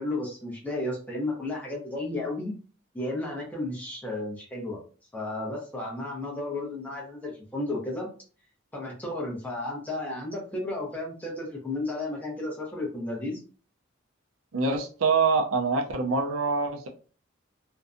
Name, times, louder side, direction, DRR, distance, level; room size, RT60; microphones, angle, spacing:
voice 1, 0.0-2.5 2.9-4.8 5.1-8.1 8.7-13.4, left 2 dB, 10° left, -3 dB, 0.7 m, -33 dB
voice 2, 14.5-16.9, right 4 dB, 90° right, 3 dB, 0.5 m, -25 dB
2.6 x 2.2 x 2.5 m, 0.39 s
head